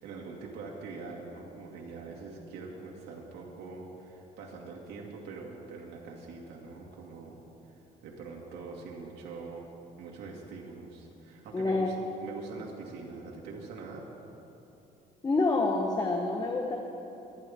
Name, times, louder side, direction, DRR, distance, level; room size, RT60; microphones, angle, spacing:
voice 1, 0.0-7.4 7.8-9.7 10.0-11.9 12.2-14.0, right 4 dB, 80° right, -2 dB, 2.2 m, -43 dB
voice 2, 11.5-11.9 15.2-16.8, left 3 dB, 20° left, 1 dB, 1.2 m, -27 dB
25.0 x 9.9 x 3.6 m, 2.9 s
cardioid pair, 110°, 17 cm